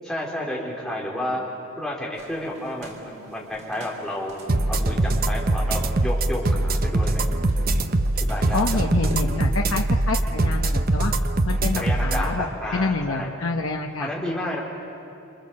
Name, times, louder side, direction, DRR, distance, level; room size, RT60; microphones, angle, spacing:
voice 1, 0.0-1.4 1.8-4.3 4.7-7.2 8.2-8.8 11.8-13.3 14.0-14.6, left 1 dB, ahead, -4 dB, 3.9 m, -31 dB
sound 1, 2.1-9.3, equal, 85° right, 3.7 m, -45 dB
sound 2, 4.5-12.2, right 2 dB, 40° right, 0.8 m, -22 dB
voice 2, 8.5-11.1 11.5-12.5 12.7-14.1, left 3 dB, 75° left, 2 dB, 1.0 m, -27 dB
27.5 x 26.5 x 7.6 m, 2.8 s
head